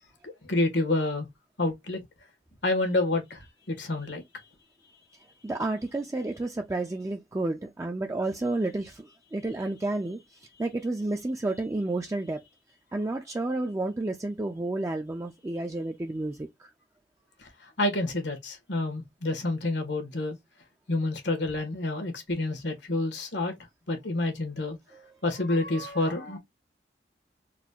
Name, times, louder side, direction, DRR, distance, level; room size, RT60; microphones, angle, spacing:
voice 1, 0.2-1.3 1.6-2.0 2.6-3.4 3.7-4.2 17.8-20.4 20.9-23.5 23.9-24.8 25.2-26.4, left 2 dB, 85° left, 1.5 m, -28 dB
voice 2, 5.4-12.4 12.9-16.7 24.9-25.1, right 2 dB, 15° right, 0.4 m, -31 dB
4.1 x 2.3 x 2.7 m
head